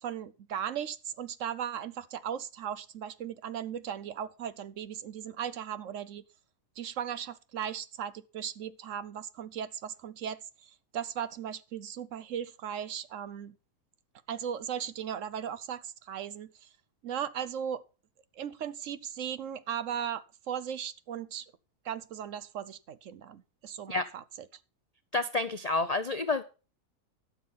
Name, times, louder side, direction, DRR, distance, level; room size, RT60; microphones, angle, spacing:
voice 1, 0.0-6.2 6.8-13.5 14.3-16.7 17.0-17.8 18.4-21.5 21.8-24.2, right 9 dB, 60° right, 0.9 m, -37 dB
voice 2, 25.1-26.4, left 3 dB, 70° left, 0.3 m, -29 dB
12.5 x 7.3 x 5.5 m
omnidirectional pair, 1.6 m